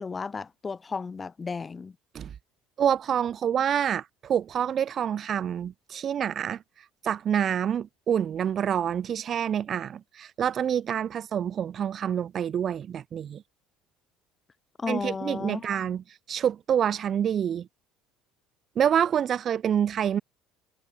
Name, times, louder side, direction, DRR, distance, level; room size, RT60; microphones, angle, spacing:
voice 1, 0.0-2.0 14.8-15.8, left 4 dB, 25° left, 2.1 m, -34 dB
voice 2, 2.8-6.6 7.0-13.4 14.9-17.7 18.8-20.2, right 9 dB, 45° right, 0.5 m, -27 dB
hypercardioid pair, 65°, 0 cm